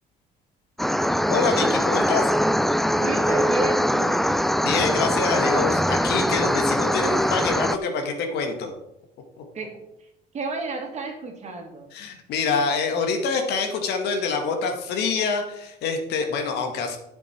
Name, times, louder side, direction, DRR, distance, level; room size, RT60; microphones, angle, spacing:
sound 1, 0.8-7.8, equal, ahead, 0.3 m, -22 dB
voice 1, 1.3-2.3 4.6-8.7 9.4-9.5 11.9-17.0, left 5 dB, 80° left, 4 dB, 1.9 m, -26 dB
voice 2, 2.9-4.2 9.5-9.8 10.3-11.9, right 3 dB, 45° right, 2 dB, 2.4 m, -31 dB
9.9 x 7.8 x 4.6 m, 0.85 s
cardioid pair, 110°, 17 cm